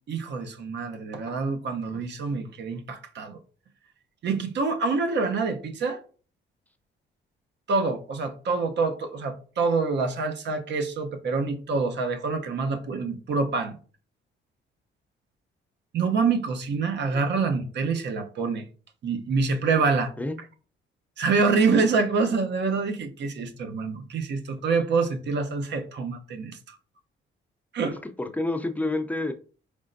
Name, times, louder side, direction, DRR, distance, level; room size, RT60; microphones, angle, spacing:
voice 1, 0.1-3.4 4.2-6.0 7.7-13.8 15.9-18.6 19.0-20.1 21.2-26.7 27.7-28.0, right 4 dB, 60° right, 0.8 m, -26 dB
voice 2, 28.0-29.3, left 2 dB, 10° left, 0.5 m, -28 dB
4.3 x 3.5 x 2.6 m
cardioid pair, 90°, 20 cm